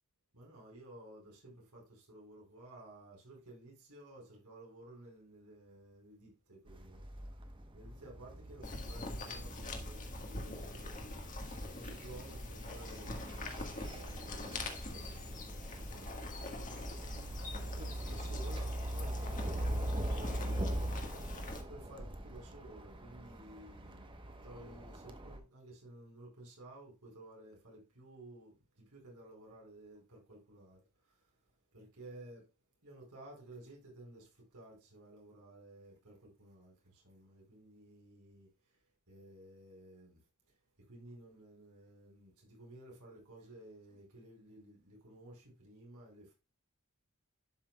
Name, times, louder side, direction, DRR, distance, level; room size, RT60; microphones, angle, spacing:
voice 1, 0.3-7.0 7.7-11.1 11.6-16.6 17.7-21.0 21.7-24.1 24.4-30.8 31.7-32.5 32.8-38.5 39.1-40.2 40.9-46.3, right 1 dB, 80° right, 4.8 m, -54 dB
sound 1, 6.7-25.4, right 1 dB, 25° right, 1.0 m, -42 dB
sound 2, 8.6-21.6, left 2 dB, 35° left, 1.5 m, -43 dB
11.5 x 6.0 x 2.3 m
head